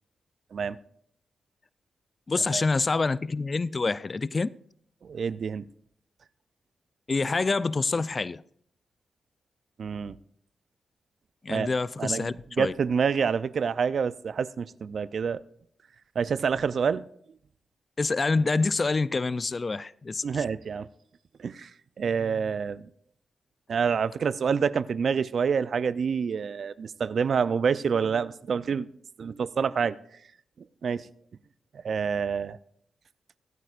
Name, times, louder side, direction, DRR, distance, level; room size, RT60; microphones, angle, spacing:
voice 1, 2.3-4.5 7.1-8.4 11.4-12.7 18.0-20.4, left 3 dB, 40° left, 0.4 m, -27 dB
voice 2, 5.0-5.7 9.8-10.2 11.5-11.7 12.0-12.3 12.6-15.4 16.2-17.0 20.2-20.9 21.4-21.7 22.0-22.9 23.7-28.9 29.2-30.0 30.8-31.1 31.7-32.6, right 6 dB, 65° right, 0.4 m, -27 dB
24.0 x 9.1 x 2.5 m
cardioid pair, 55°, 0 cm